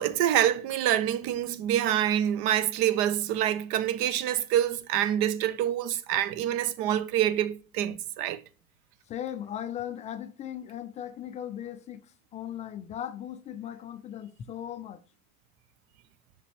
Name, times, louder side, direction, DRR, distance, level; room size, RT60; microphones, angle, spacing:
voice 1, 0.0-8.4, right 11 dB, 50° right, 0.7 m, -26 dB
voice 2, 9.1-12.0 12.3-15.0, left 10 dB, 20° left, 0.3 m, -38 dB
6.0 x 4.9 x 3.3 m
hypercardioid pair, 85°, 43 cm